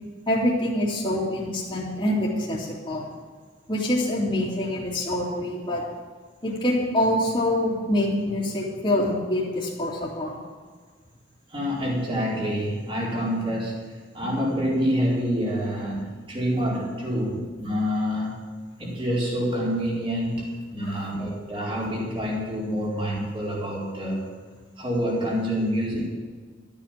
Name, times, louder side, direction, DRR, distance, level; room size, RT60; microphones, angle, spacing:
voice 1, 0.3-3.1 3.7-5.8 6.4-10.4 20.8-21.1, left 1 dB, 25° left, -10 dB, 2.7 m, -25 dB
voice 2, 11.5-13.8 14.1-18.4 18.8-24.3 24.8-26.1, equal, 30° right, -5 dB, 4.5 m, -27 dB
13.5 x 9.0 x 7.5 m, 1.5 s
head